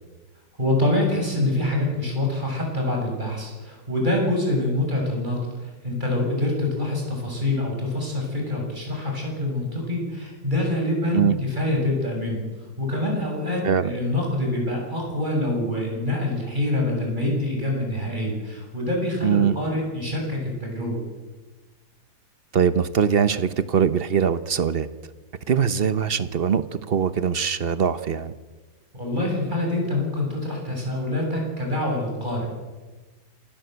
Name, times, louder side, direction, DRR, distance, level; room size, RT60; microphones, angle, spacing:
voice 1, 0.6-21.0 28.9-32.5, left 1 dB, 25° right, 0 dB, 7.5 m, -25 dB
voice 2, 19.2-19.5 22.5-24.9 25.5-28.3, right 7 dB, 45° right, 13 dB, 0.8 m, -22 dB
27.0 x 16.5 x 8.0 m, 1.3 s
omnidirectional pair, 1.9 m